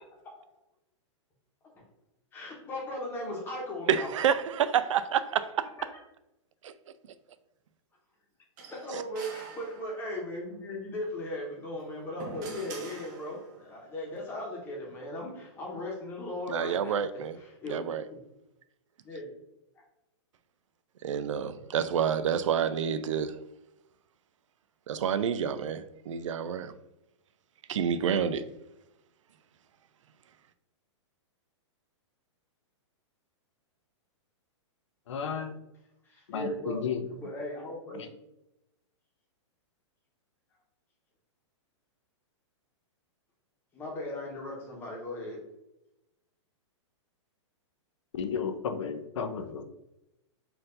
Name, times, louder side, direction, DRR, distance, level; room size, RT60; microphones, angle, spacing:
voice 1, 2.3-4.1 8.7-18.0 19.0-19.3 36.0-36.8 37.1-38.1 43.7-45.4, left 1 dB, 15° left, 1.0 m, -37 dB
voice 2, 3.9-5.7 6.6-6.7 8.9-9.0 16.5-17.4 17.7-18.0 21.0-23.4 24.9-26.7 27.7-28.4, right 8 dB, 85° right, 0.4 m, -28 dB
sound 1, 8.6-10.3 11.7-13.7, right 3 dB, 35° right, 0.9 m, -45 dB
voice 3, 35.1-35.5 36.3-37.0 37.9-38.1 48.1-49.6, left 6 dB, 70° left, 0.6 m, -33 dB
4.5 x 2.6 x 3.8 m
hypercardioid pair, 165°, 16 cm